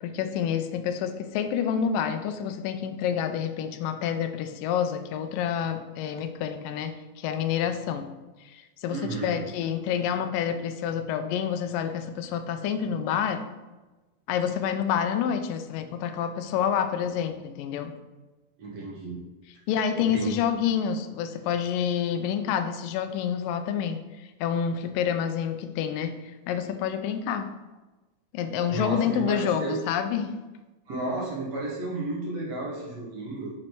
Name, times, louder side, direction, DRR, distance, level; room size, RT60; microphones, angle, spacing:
voice 1, 0.0-8.1 8.4-13.5 14.3-17.9 19.7-26.2 26.5-27.5 28.3-30.4, left 8 dB, 80° left, 8 dB, 2.2 m, -28 dB
voice 2, 8.9-9.4 18.6-19.2 20.0-20.5 28.7-29.8 30.9-33.5, right 2 dB, 50° right, -4 dB, 2.5 m, -32 dB
7.5 x 6.3 x 4.6 m, 1.2 s
omnidirectional pair, 4.1 m